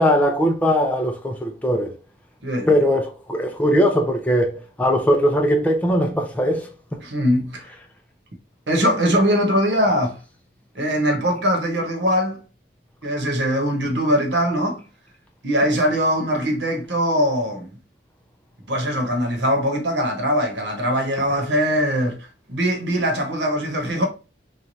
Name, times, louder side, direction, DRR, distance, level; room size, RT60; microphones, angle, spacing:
voice 1, 0.0-1.9 2.7-6.7, equal, 10° left, 0.4 m, -20 dB
voice 2, 2.4-2.8 7.0-7.7 8.7-10.2 10.7-12.4 13.0-14.8 15.4-17.7 18.7-24.1, equal, 75° right, 1.1 m, -21 dB
3.1 x 2.3 x 3.9 m
head